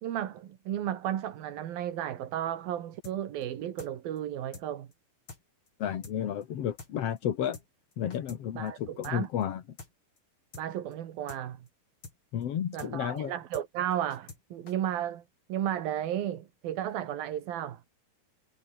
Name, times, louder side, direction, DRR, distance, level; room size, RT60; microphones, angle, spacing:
voice 1, 0.0-4.9 8.6-9.3 10.6-11.7 12.7-15.2 15.5-17.8, right 11 dB, 75° right, 3.6 m, -34 dB
sound 1, 3.0-3.2 3.4-3.5 3.8-4.2 4.5-4.7 4.9-5.0 5.3-5.4 5.7-5.8 6.0-6.2 6.4-6.5 6.8-6.9 7.2-7.3 7.5-7.7 7.9-8.4 8.7-8.8 9.0-9.2 9.4-9.5 9.8-9.9 10.2-10.3 10.5-10.7 10.9-11.0 11.3-11.4 11.7-11.8 12.0-12.2 12.4-12.5 12.8-12.9 13.2-13.3 13.5-13.7 13.9-14.4 14.7-14.8, left 4 dB, 35° left, 5.1 m, -46 dB
voice 2, 5.8-7.6 8.0-9.6 12.3-13.3, left 9 dB, 50° left, 2.1 m, -32 dB
omnidirectional pair, 4.4 m